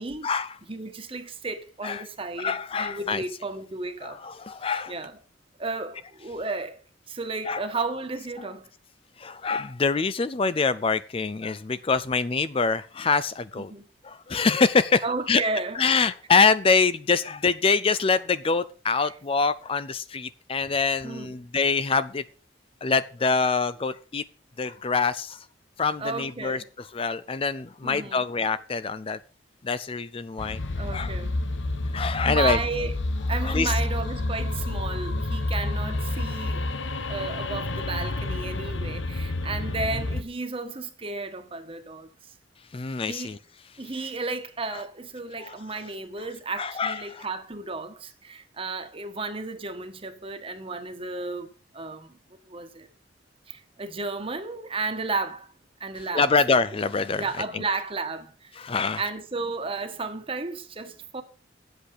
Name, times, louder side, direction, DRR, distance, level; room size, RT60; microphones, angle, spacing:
voice 1, 0.7-4.2 4.9-5.2 5.6-6.8 7.1-8.7 13.6-13.9 15.0-15.8 18.9-19.1 21.0-21.3 26.0-26.6 27.8-28.2 30.7-31.3 32.2-32.9 33.3-36.6 37.1-42.1 43.1-43.3 43.8-51.5 51.7-52.2 52.4-52.9 53.5-55.5 55.8-56.3 57.1-58.6 59.0-61.2, right 3 dB, 30° right, 1.4 m, -33 dB
voice 2, 2.4-3.2 4.0-4.9 7.4-7.6 9.2-13.7 14.0-15.4 15.8-22.2 22.8-24.2 24.6-25.4 25.8-26.6 26.9-29.2 29.6-30.6 30.9-31.1 31.9-32.6 33.4-33.7 42.7-43.4 44.7-44.8 45.4-45.6 46.6-47.3 56.1-57.2 57.5-57.6 58.6-59.0, left 4 dB, 30° left, 0.4 m, -25 dB
sound 1, 30.4-40.2, left 2 dB, 85° left, 1.1 m, -29 dB
10.0 x 8.0 x 6.5 m
head